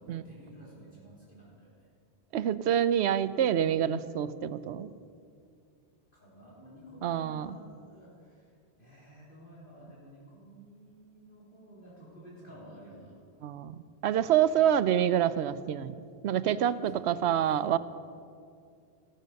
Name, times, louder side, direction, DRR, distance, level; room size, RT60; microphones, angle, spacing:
voice 1, 0.0-1.9 6.1-13.1 14.3-14.7 16.7-17.5, right 1 dB, 55° left, -6 dB, 3.8 m, -52 dB
voice 2, 2.3-4.9 7.0-7.5 13.4-16.0 16.2-17.8, right 10 dB, 80° right, 15 dB, 0.9 m, -27 dB
15.0 x 13.5 x 6.4 m, 2.3 s
omnidirectional pair, 1.1 m